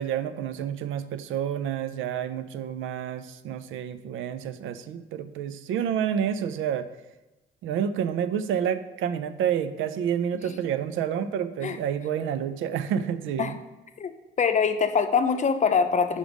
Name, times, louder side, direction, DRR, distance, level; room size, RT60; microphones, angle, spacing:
voice 1, 0.0-6.9 7.6-13.5, right 8 dB, 85° right, 12 dB, 0.4 m, -29 dB
voice 2, 14.4-16.2, left 6 dB, 40° left, 8 dB, 0.6 m, -23 dB
5.1 x 5.0 x 5.1 m, 1.0 s
cardioid pair, 90°, 20 cm